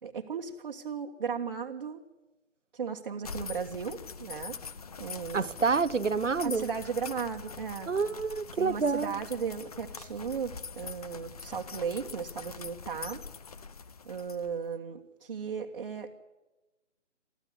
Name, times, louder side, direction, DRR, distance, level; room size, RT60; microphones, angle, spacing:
voice 1, 0.0-2.0 2.7-4.6 5.0-5.5 6.4-7.9 8.6-13.2 14.0-16.1, right 6 dB, 40° right, 1.5 m, -36 dB
sound 1, 3.2-14.7, left 5 dB, 30° left, 0.8 m, -44 dB
voice 2, 5.3-6.7 7.9-9.1, right 4 dB, 80° right, 0.9 m, -28 dB
24.0 x 14.5 x 9.8 m
figure-of-eight pair, 140°, 37 cm